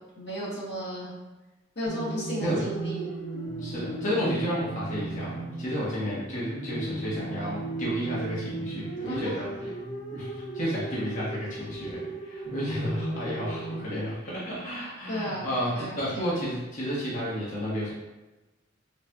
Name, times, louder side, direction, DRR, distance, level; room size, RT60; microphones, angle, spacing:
voice 1, 0.2-1.1 1.7-3.1 9.0-9.4 15.1-15.5 15.7-16.4, equal, 60° left, -7 dB, 1.3 m, -34 dB
sound 1, 1.9-13.9, right 2 dB, 85° left, 1.1 m, -36 dB
voice 2, 3.6-9.5 10.1-15.7 16.0-17.9, equal, 45° left, -8 dB, 1.0 m, -32 dB
4.3 x 2.3 x 2.2 m, 1.1 s
head